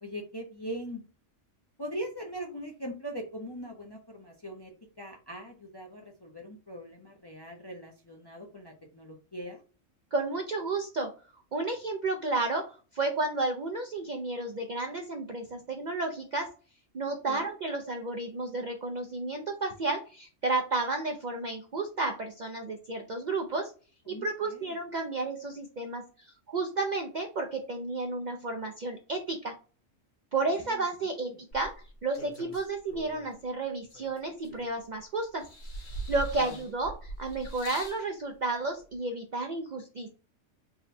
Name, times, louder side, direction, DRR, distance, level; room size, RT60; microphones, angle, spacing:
voice 1, 0.0-1.0 1.8-4.7 5.0-9.6 17.3-17.5 24.1-24.8 30.7-30.8 36.4-36.6, equal, 35° left, 0 dB, 0.4 m, -41 dB
voice 2, 10.1-11.1 11.5-16.5 16.9-23.7 24.1-29.5 30.3-35.5 36.1-40.1, right 3 dB, 60° right, 3 dB, 0.5 m, -32 dB
sound 1, 31.5-33.3 33.9-35.0 35.4-38.0 38.9-39.0, right 2 dB, 65° left, 1.2 m, -42 dB
3.7 x 2.1 x 4.1 m, 0.36 s
omnidirectional pair, 1.3 m